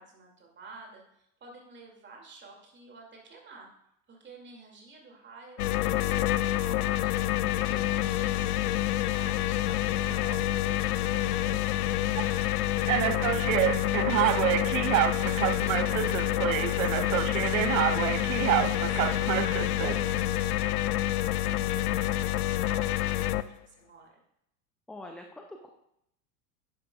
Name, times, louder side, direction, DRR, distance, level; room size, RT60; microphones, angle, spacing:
voice 1, 0.0-3.7 4.1-7.5 7.8-10.3 10.5-11.7 12.0-17.6 18.4-24.2, right 3 dB, 25° right, 0 dB, 2.4 m, -51 dB
sound 1, 5.6-23.4, left 14 dB, 75° left, 0.5 m, -28 dB
sound 2, 9.8-10.4 11.1-11.3 12.2-12.3 12.9-20.2, right 14 dB, 60° right, 0.5 m, -28 dB
voice 2, 17.7-18.0 24.9-25.7, left 1 dB, ahead, 3 dB, 0.4 m, -45 dB
10.5 x 10.0 x 2.3 m, 0.77 s
figure-of-eight pair, 85°, 46 cm